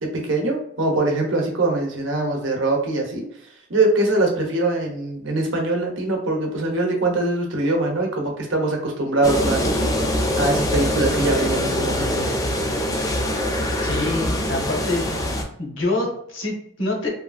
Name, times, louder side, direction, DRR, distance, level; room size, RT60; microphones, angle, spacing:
voice 1, 0.0-3.2 3.7-9.7 10.4-12.2, right 2 dB, 70° right, 1 dB, 0.8 m, -22 dB
sound 1, 9.2-15.4, left 1 dB, 15° left, 0.3 m, -23 dB
voice 2, 13.8-15.1 15.6-17.1, left 2 dB, 70° left, 0 dB, 0.9 m, -26 dB
2.9 x 2.4 x 2.3 m, 0.70 s
head